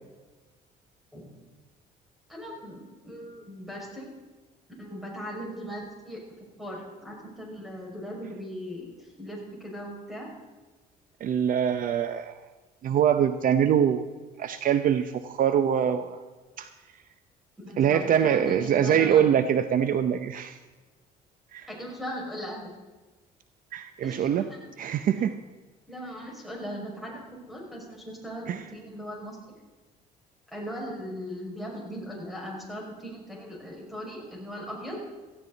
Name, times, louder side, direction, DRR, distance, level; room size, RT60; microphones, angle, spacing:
voice 1, 2.3-4.1 4.8-6.2 6.6-10.3 17.6-19.3 21.7-22.7 24.0-24.7 25.1-25.2 25.9-29.6 30.5-35.0, equal, ahead, -2 dB, 5.8 m, -39 dB
voice 2, 11.2-12.4 12.8-14.0 14.4-16.2 16.6-16.7 17.8-20.6 21.5-21.7 23.7-24.5 24.8-25.3 28.5-28.6, right 9 dB, 55° right, 10 dB, 0.7 m, -24 dB
17.5 x 15.0 x 4.0 m, 1.3 s
cardioid pair, 110°, 17 cm